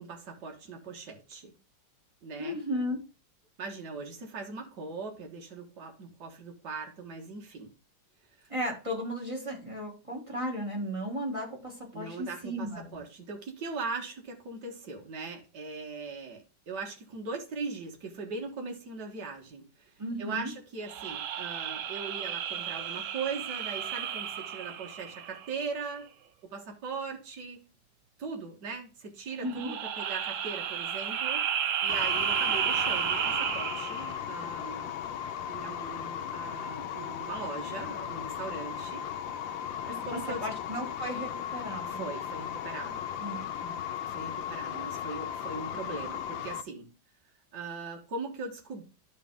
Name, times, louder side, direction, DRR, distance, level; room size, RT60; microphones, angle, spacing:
voice 1, 0.0-1.5 2.2-2.6 3.6-7.7 8.4-8.5 11.9-26.1 26.4-27.6 28.2-31.4 31.8-34.9 35.5-39.0 40.1-40.4 41.9-43.0 44.0-46.9 47.5-48.8, right 4 dB, 60° right, 1 dB, 2.2 m, -40 dB
voice 2, 2.4-3.0 8.5-13.0 20.0-20.5 29.4-29.7 39.8-40.1 40.4-42.0 43.2-43.8, equal, 15° right, -2 dB, 2.8 m, -35 dB
sound 1, 20.8-25.6 29.4-34.2, right 8 dB, 80° right, 0.7 m, -32 dB
sound 2, 31.9-46.6, left 9 dB, 80° left, 1.4 m, -37 dB
11.5 x 4.2 x 3.7 m, 0.32 s
omnidirectional pair, 2.1 m